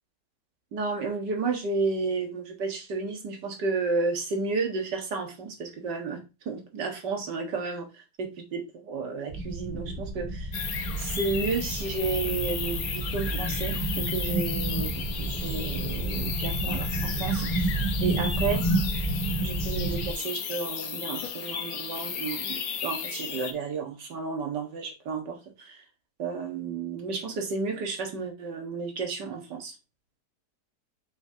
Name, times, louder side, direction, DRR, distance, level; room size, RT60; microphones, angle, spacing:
voice 1, 0.7-6.2 6.5-10.5 11.0-17.5 18.0-18.6 19.4-25.8 26.2-29.7, right 4 dB, 85° right, 2.3 m, -32 dB
sound 1, 9.3-20.1, right 2 dB, 55° right, 1.9 m, -30 dB
sound 2, 10.5-23.5, left 7 dB, 60° left, 1.4 m, -34 dB
7.5 x 6.2 x 2.8 m
omnidirectional pair, 1.8 m